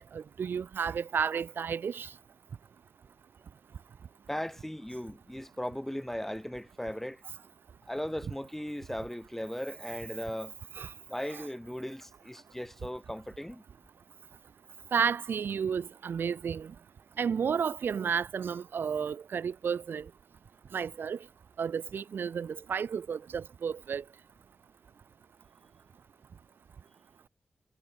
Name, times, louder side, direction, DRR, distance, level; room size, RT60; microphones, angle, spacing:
voice 1, 0.0-2.1 10.8-10.9 11.3-11.5 14.9-16.7 17.2-20.1 20.7-21.2 21.6-24.0, right 7 dB, 75° right, 0.6 m, -32 dB
voice 2, 4.3-7.2 7.9-10.5 11.1-13.6, left 1 dB, 10° left, 5.0 m, -37 dB
supercardioid pair, 40°, 4 cm